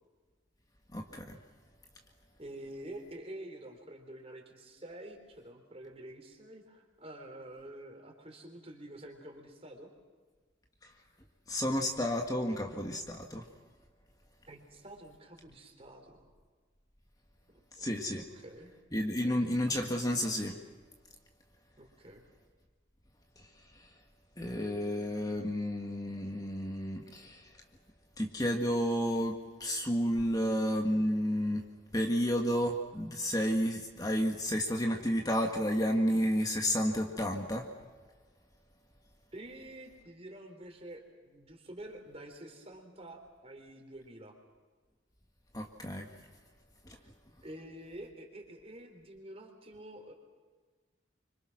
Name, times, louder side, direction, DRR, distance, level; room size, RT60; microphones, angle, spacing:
voice 1, 0.9-1.4 11.5-13.4 17.8-18.2 18.9-20.6 23.8-23.9 24.4-27.5 28.2-31.6 31.9-37.7 45.5-46.1 46.9-47.0, equal, 20° left, 2 dB, 1.7 m, -31 dB
voice 2, 2.4-9.9 14.5-16.3 17.5-17.9 18.2-19.4 21.8-22.3 39.3-44.3 47.0-47.1 47.4-50.1, right 1 dB, 30° right, 3 dB, 4.1 m, -48 dB
27.5 x 25.5 x 6.2 m, 1.5 s
head